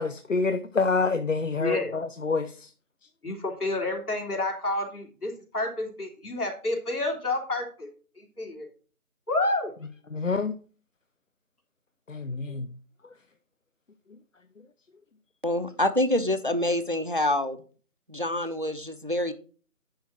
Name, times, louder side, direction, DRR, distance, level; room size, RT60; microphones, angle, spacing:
voice 1, 0.0-2.7 10.1-10.5 12.1-12.7, left 4 dB, 55° left, 0.7 m, -27 dB
voice 2, 1.6-1.9 3.2-7.9 8.2-8.7 9.3-9.7, left 2 dB, 75° left, 3.1 m, -29 dB
voice 3, 15.4-17.6 18.1-19.3, left 1 dB, 35° right, 0.6 m, -26 dB
10.5 x 3.9 x 6.0 m
figure-of-eight pair, 170°, 45 cm